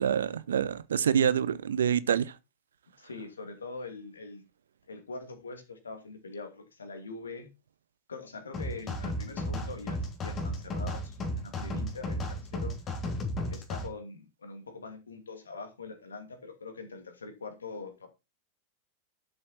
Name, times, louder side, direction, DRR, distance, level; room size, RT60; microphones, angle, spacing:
voice 1, 0.0-2.3, right 8 dB, 65° right, 0.7 m, -26 dB
voice 2, 3.0-4.4 4.9-7.5 8.1-12.8 13.5-18.1, left 3 dB, 70° left, 2.7 m, -43 dB
sound 1, 8.5-13.9, left 1 dB, 25° left, 3.2 m, -34 dB
12.0 x 7.7 x 4.2 m
figure-of-eight pair, 90°, 0 cm